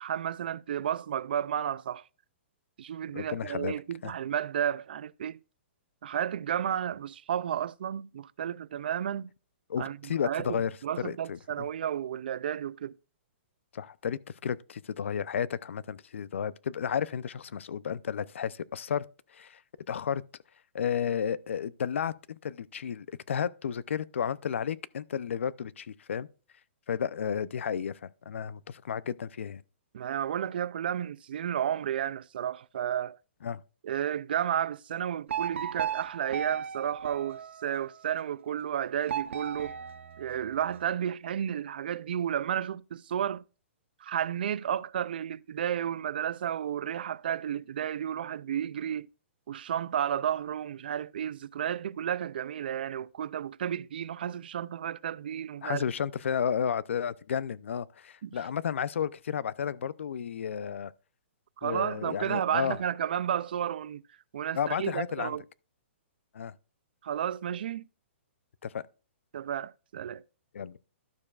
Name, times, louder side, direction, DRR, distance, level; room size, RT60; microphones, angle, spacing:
voice 1, 0.0-2.0 2.8-5.4 6.0-9.3 9.8-13.0 29.9-33.2 33.8-39.7 40.2-43.4 44.0-49.1 49.5-55.8 58.2-58.3 61.6-64.0 64.3-65.4 67.0-67.8 69.3-70.2, right 9 dB, 50° right, 0.3 m, -32 dB
voice 2, 3.1-3.8 4.0-4.1 9.7-11.4 13.7-19.1 19.3-19.6 19.9-20.2 20.7-26.3 26.9-29.6 33.4-33.6 55.6-60.9 61.6-62.8 64.5-65.4 66.3-66.5 68.6-68.8 70.5-70.8, left 8 dB, 75° left, 0.5 m, -32 dB
sound 1, 35.3-38.0 39.1-40.8, right 8 dB, 75° right, 0.7 m, -36 dB
12.5 x 6.8 x 2.4 m
hypercardioid pair, 175°, 7 cm